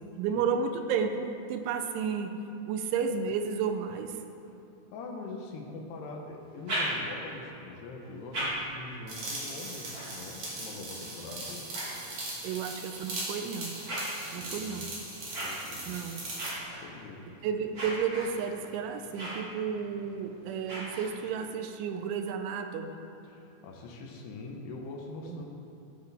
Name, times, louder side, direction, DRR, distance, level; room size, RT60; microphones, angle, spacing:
voice 1, 0.0-2.3 2.7-4.2 12.4-13.8 14.3-14.9 15.9-16.2 17.4-23.0 25.2-25.4, right 6 dB, 85° right, 6 dB, 3.0 m, -32 dB
voice 2, 4.9-11.7 14.3-14.8 15.2-16.0 16.8-17.3 23.2-25.4, left 3 dB, 75° left, 0 dB, 2.5 m, -43 dB
sound 1, 6.4-7.4 8.0-12.6 13.2-21.5, right 1 dB, 30° right, 1.6 m, -40 dB
sound 2, 9.1-16.6, right 2 dB, 50° right, 2.1 m, -39 dB
12.5 x 9.1 x 3.4 m, 2.9 s
omnidirectional pair, 5.6 m